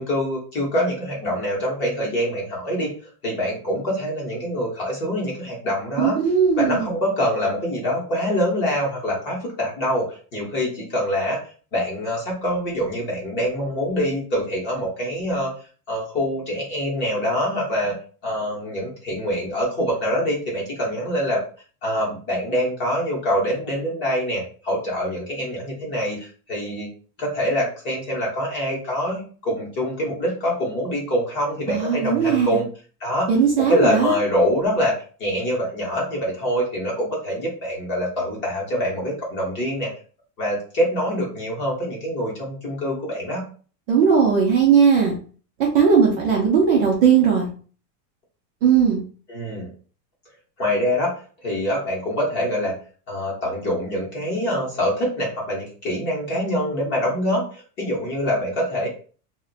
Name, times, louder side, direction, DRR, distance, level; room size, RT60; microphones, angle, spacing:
voice 1, 0.0-2.9 3.2-6.2 6.6-11.4 11.7-15.5 15.9-18.0 18.2-21.4 21.8-26.9 27.2-32.7 33.0-33.3 33.7-39.9 40.4-43.5 49.3-49.7 50.6-51.1 51.4-52.8 53.1-58.9, equal, 25° left, -3 dB, 0.8 m, -25 dB
voice 2, 6.0-6.9 31.7-32.6 33.3-34.1 43.9-45.2 45.7-47.5 48.6-49.0, right 6 dB, 40° right, -2 dB, 0.5 m, -18 dB
2.5 x 2.1 x 3.8 m, 0.40 s
supercardioid pair, 175°, 48 cm